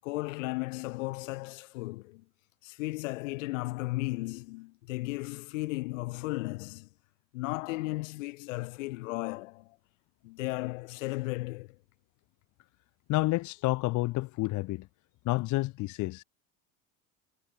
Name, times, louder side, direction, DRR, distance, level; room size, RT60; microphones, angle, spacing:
voice 1, 0.0-2.2 2.6-6.9 7.3-9.8 10.2-11.8, left 22 dB, 60° left, 6.7 m, -35 dB
voice 2, 13.1-14.9 15.2-16.2, left 20 dB, 45° left, 1.1 m, -29 dB
figure-of-eight pair, 70°, 42 cm